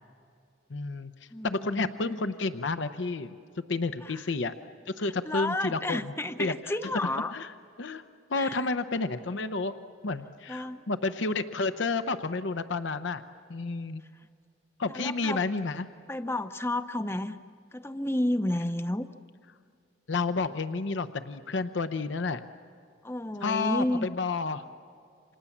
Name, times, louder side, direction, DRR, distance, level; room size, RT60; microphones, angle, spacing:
voice 1, 0.7-1.1 1.4-3.3 3.7-4.5 4.9-6.0 6.4-6.5 7.3-7.5 7.8-8.0 8.3-9.7 10.0-13.2 13.5-14.0 14.8-15.9 20.1-22.4 23.4-24.6, left 3 dB, 70° left, 11 dB, 0.7 m, -30 dB
voice 2, 1.3-2.3 4.0-4.3 5.0-7.3 8.3-8.7 10.5-10.8 14.9-15.4 16.1-17.4 17.7-19.1 23.0-24.1, left 1 dB, 10° left, 10 dB, 0.6 m, -31 dB
29.0 x 26.5 x 7.3 m, 2.3 s
head